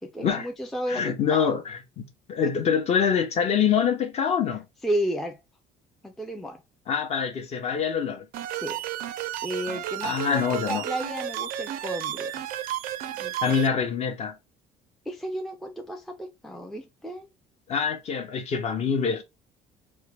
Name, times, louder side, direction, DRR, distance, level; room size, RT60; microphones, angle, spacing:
voice 1, 0.0-1.5 2.4-2.5 4.8-5.4 6.0-6.6 8.5-8.8 9.4-12.3 13.2-13.6 15.1-17.3, equal, ahead, 0.4 m, -33 dB
voice 2, 0.9-4.6 6.9-8.3 10.0-10.8 13.4-14.4 17.7-19.2, left 7 dB, 40° left, 0.7 m, -25 dB
sound 1, 8.3-13.7, right 11 dB, 65° right, 0.4 m, -32 dB
3.5 x 2.1 x 3.3 m
cardioid pair, 155°, 17 cm